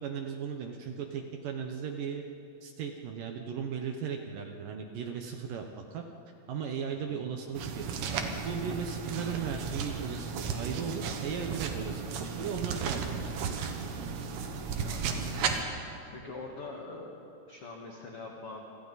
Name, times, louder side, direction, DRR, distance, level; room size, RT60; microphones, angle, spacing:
voice 1, 0.0-2.2 2.6-6.0 6.5-8.0 8.5-12.1 12.4-13.9, right 6 dB, 70° right, 4 dB, 2.4 m, -37 dB
sound 1, 7.5-15.6, right 5 dB, 85° right, 3.6 m, -34 dB
voice 2, 14.8-15.3 16.1-17.1 17.5-18.6, left 3 dB, 45° left, -1 dB, 2.2 m, -43 dB
29.5 x 26.5 x 4.1 m, 2.7 s
omnidirectional pair, 4.6 m